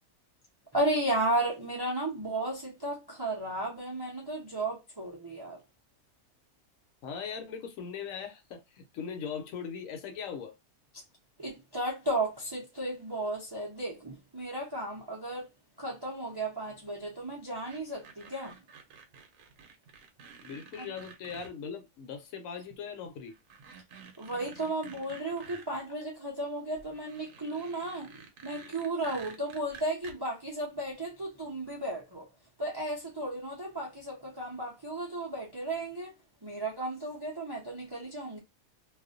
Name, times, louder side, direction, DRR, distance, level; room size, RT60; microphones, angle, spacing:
voice 1, 0.7-5.6 10.9-11.0 11.4-15.5 15.8-18.6 20.8-20.9 24.2-28.1 28.4-32.3 32.6-36.1 36.4-38.4, right 1 dB, 35° right, 0.3 m, -34 dB
voice 2, 7.0-10.6 20.4-23.3, left 6 dB, 75° left, 1.0 m, -40 dB
sound 1, 17.7-21.5 22.7-22.8 23.3-25.8 26.7-30.1, right 6 dB, 75° right, 1.0 m, -51 dB
2.4 x 2.1 x 2.4 m
omnidirectional pair, 1.5 m